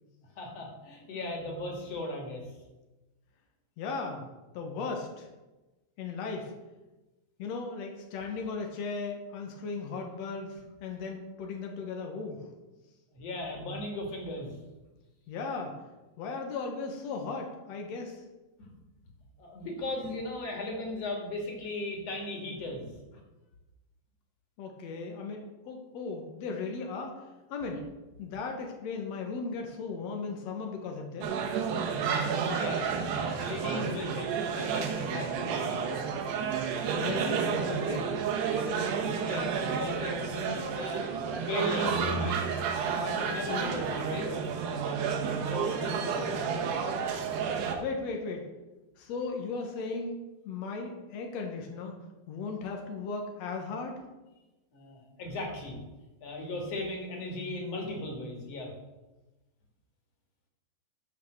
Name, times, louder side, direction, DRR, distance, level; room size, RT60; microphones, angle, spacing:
voice 1, 0.4-2.4 13.1-14.5 18.6-18.7 19.4-22.9 23.1-23.2 32.4-35.8 39.2-41.1 41.4-42.4 43.0-44.3 44.6-45.0 45.5-46.7 47.5-47.6 54.7-55.8 56.2-58.7, left 1 dB, 45° left, 0 dB, 2.9 m, -37 dB
voice 2, 3.8-4.2 4.5-5.3 6.0-6.5 7.4-12.5 15.3-15.7 16.2-18.2 24.6-27.1 27.5-27.8 28.2-31.3 36.9-38.1 43.3-43.7 47.8-48.4 49.0-50.2 50.4-51.9 52.3-54.0, left 4 dB, 75° left, 2 dB, 1.5 m, -36 dB
sound 1, 31.2-47.8, right 6 dB, 75° right, 3.3 m, -31 dB
13.0 x 6.2 x 6.6 m, 1.1 s
omnidirectional pair, 4.9 m